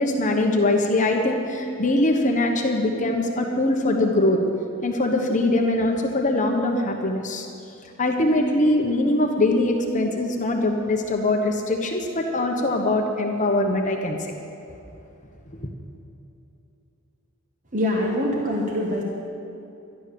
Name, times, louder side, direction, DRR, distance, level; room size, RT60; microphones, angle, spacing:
voice 1, 0.0-4.4 4.8-7.5 8.0-14.3, left 2 dB, 35° left, 2 dB, 1.1 m, -22 dB
voice 2, 17.7-19.0, left 1 dB, 35° right, -1 dB, 1.5 m, -24 dB
12.0 x 11.5 x 6.8 m, 2.8 s
head